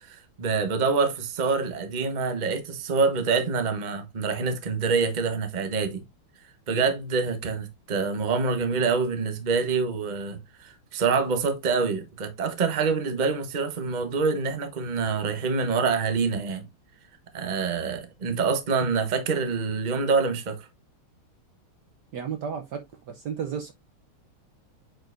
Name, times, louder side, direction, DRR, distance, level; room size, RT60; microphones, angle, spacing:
voice 1, 0.0-6.0 6.7-16.7 17.3-20.7, right 4 dB, 30° right, 0.9 m, -26 dB
voice 2, 22.1-22.8 23.1-23.7, right 7 dB, 65° right, 1.2 m, -32 dB
9.1 x 4.7 x 2.5 m
omnidirectional pair, 2.4 m